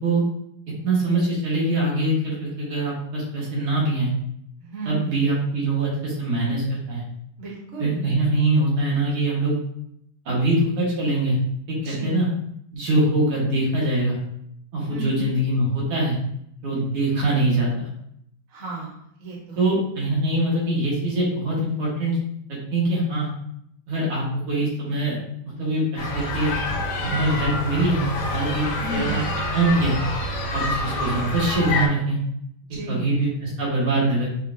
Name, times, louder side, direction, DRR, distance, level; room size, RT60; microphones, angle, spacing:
voice 1, 0.8-4.1 4.9-7.0 7.8-9.6 10.3-11.4 11.7-12.3 12.7-14.2 14.7-16.2 16.6-17.9 19.6-22.2 22.7-23.3 23.9-25.2 25.5-26.6 27.0-29.2 29.5-30.0 30.5-32.2 32.9-34.3, right 2 dB, 75° right, -5 dB, 2.2 m, -23 dB
voice 2, 4.6-5.3 7.4-8.1 11.8-12.2 14.9-15.2 18.5-19.6 28.8-29.3 32.7-33.2, right 2 dB, 45° right, -4 dB, 0.9 m, -34 dB
sound 1, 26.0-31.9, left 1 dB, 65° left, 1.1 m, -27 dB
5.5 x 2.2 x 2.5 m, 0.72 s
omnidirectional pair, 2.4 m